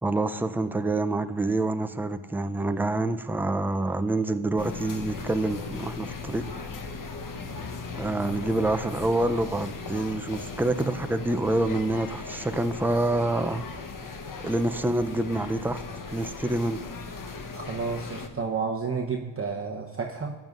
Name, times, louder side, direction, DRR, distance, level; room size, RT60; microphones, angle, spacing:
voice 1, 0.0-6.4 8.0-13.6 14.4-15.8 16.1-16.8, right 2 dB, 5° right, 10 dB, 0.4 m, -27 dB
sound 1, 4.6-18.3, left 4 dB, 45° left, 0.9 m, -38 dB
voice 2, 17.5-20.4, right 5 dB, 30° right, -1 dB, 0.8 m, -31 dB
14.5 x 9.1 x 2.5 m, 1.4 s
cardioid pair, 90°, 47 cm